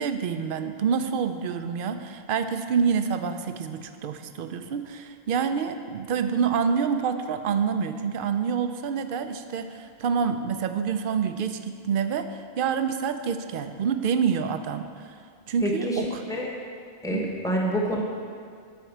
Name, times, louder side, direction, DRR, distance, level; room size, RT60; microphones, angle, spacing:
voice 1, 0.0-15.2 15.5-16.2 17.1-17.4, right 6 dB, 60° right, 9 dB, 0.7 m, -27 dB
voice 2, 15.6-16.0 16.3-16.5 17.0-18.0, equal, 5° left, -1 dB, 1.1 m, -27 dB
10.5 x 4.4 x 7.2 m, 2.2 s
omnidirectional pair, 1.1 m